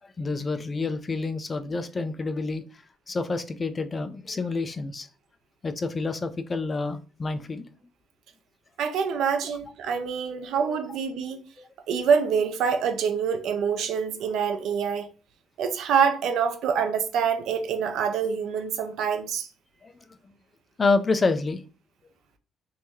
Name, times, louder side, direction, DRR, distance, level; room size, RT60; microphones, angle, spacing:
voice 1, 0.2-2.6 3.1-5.1 5.6-7.7 10.5-10.8 11.6-11.7 19.8-19.9 20.8-21.6, left 3 dB, 25° left, 0.3 m, -28 dB
voice 2, 8.8-11.4 11.9-15.1 15.6-19.5, right 6 dB, 70° right, 0.6 m, -26 dB
3.1 x 2.7 x 3.5 m
cardioid pair, 150°, 0 cm